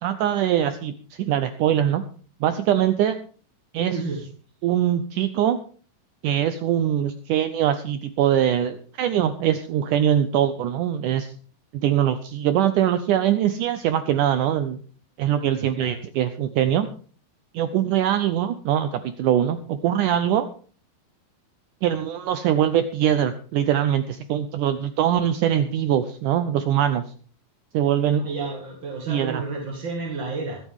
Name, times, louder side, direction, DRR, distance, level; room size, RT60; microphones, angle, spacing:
voice 1, 0.0-2.0 2.4-3.2 3.7-4.0 4.6-5.6 6.2-11.3 11.7-14.8 15.2-16.9 17.5-20.5 21.8-27.0 27.7-28.3 29.1-29.4, right 10 dB, 80° right, 10 dB, 1.8 m, -22 dB
voice 2, 3.8-4.2 15.7-15.9 28.2-30.6, right 4 dB, 40° right, 0 dB, 2.1 m, -31 dB
24.5 x 8.4 x 3.6 m, 0.42 s
omnidirectional pair, 4.4 m